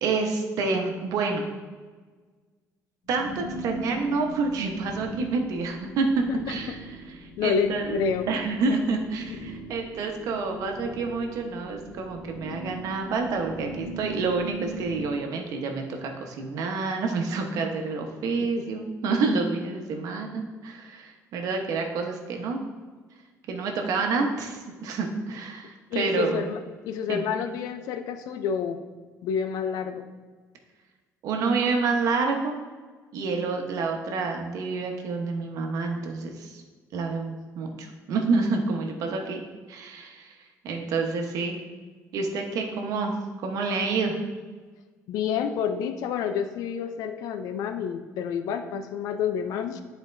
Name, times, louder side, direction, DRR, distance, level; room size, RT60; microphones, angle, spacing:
voice 1, 0.0-1.4 3.1-6.9 7.2-8.0 8.3-22.7 23.5-26.5 27.1-27.2 31.2-32.6 33.1-36.6 36.9-39.4 39.7-40.3 40.6-41.6 42.1-43.1 43.4-44.2, right 4 dB, 75° right, 2 dB, 1.0 m, -28 dB
sound 1, 3.0-15.1, right 2 dB, 70° left, 2.0 m, -40 dB
voice 2, 7.4-8.3 9.3-9.4 18.4-18.7 25.9-28.8 29.2-30.1 45.1-49.8, left 7 dB, 85° left, 8 dB, 0.5 m, -29 dB
10.0 x 4.4 x 2.6 m, 1.4 s
cardioid pair, 115°, 6 cm